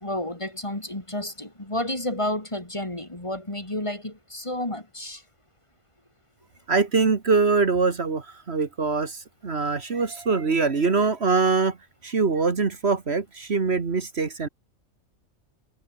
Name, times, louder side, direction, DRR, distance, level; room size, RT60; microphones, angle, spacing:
voice 1, 0.0-5.2, left 1 dB, 25° left, 2.8 m, -31 dB
voice 2, 6.7-11.8 12.0-14.5, right 4 dB, 55° right, 1.9 m, -23 dB
omnidirectional pair, 1.3 m